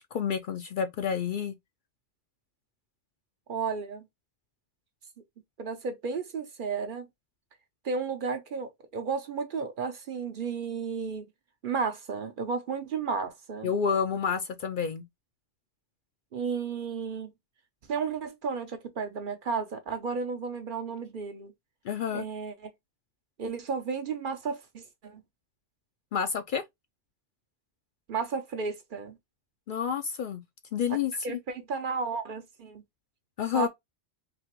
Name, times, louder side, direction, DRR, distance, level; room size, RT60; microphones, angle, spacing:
voice 1, 0.1-1.5 13.6-15.0 21.8-22.2 26.1-26.6 29.7-30.4 30.7-31.1 33.4-33.7, left 7 dB, 60° left, 0.6 m, -29 dB
voice 2, 3.5-4.1 5.6-7.1 7.8-11.2 11.6-13.7 16.3-17.3 17.9-21.5 22.1-22.7 23.4-25.2 28.1-29.2 30.9-31.0 31.2-32.8 33.5-33.7, right 5 dB, 55° right, 0.7 m, -33 dB
3.9 x 2.9 x 2.9 m
omnidirectional pair, 1.1 m